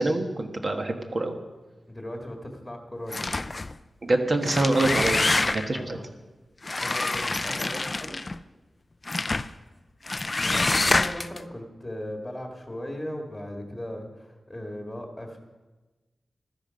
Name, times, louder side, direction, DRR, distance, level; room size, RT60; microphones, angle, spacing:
voice 1, 0.0-1.3 4.0-6.0, right 2 dB, 40° right, 4 dB, 1.4 m, -25 dB
voice 2, 1.9-3.4 5.7-6.0 6.8-8.2 10.4-15.4, left 1 dB, 5° left, 2 dB, 1.8 m, -38 dB
sound 1, 3.1-3.7 4.3-5.8 6.6-8.4 9.1-9.5 10.1-11.4, left 2 dB, 25° left, 0.4 m, -26 dB
15.0 x 12.5 x 5.2 m, 1.2 s
wide cardioid pair, 160°, 0 cm